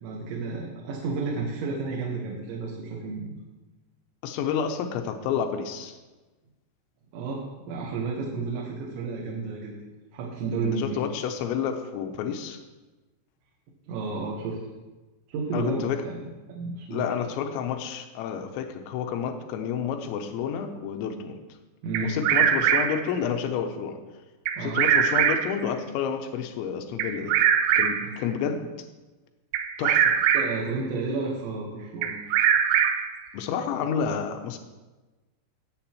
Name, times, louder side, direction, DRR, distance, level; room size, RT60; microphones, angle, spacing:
voice 1, 0.0-3.3 7.1-9.7 10.1-11.0 13.9-14.6 15.3-17.1 21.8-22.2 24.6-24.8 28.0-28.1 30.3-32.1, right 4 dB, 70° right, -3 dB, 3.3 m, -32 dB
voice 2, 4.2-6.0 10.6-12.6 15.5-16.1 16.9-21.4 22.0-24.0 24.6-27.4 27.8-28.7 29.8-30.1 33.3-34.6, left 7 dB, 85° left, 6 dB, 2.8 m, -30 dB
Bird vocalization bird call bird song, 21.9-23.1 24.5-25.6 27.0-28.2 29.5-30.7 32.0-33.2, right 9 dB, 90° right, 2.5 m, -22 dB
18.5 x 7.9 x 3.0 m, 1.2 s
omnidirectional pair, 5.9 m